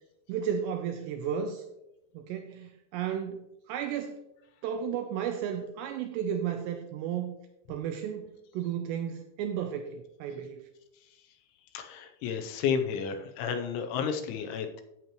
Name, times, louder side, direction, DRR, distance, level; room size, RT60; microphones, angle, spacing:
voice 1, 0.3-1.6 2.1-4.2 4.6-7.4 7.7-10.6, right 8 dB, 85° right, 6 dB, 2.5 m, -33 dB
voice 2, 11.7-14.8, left 7 dB, 80° left, 6 dB, 3.1 m, -32 dB
11.0 x 8.5 x 3.0 m, 0.87 s
omnidirectional pair, 5.5 m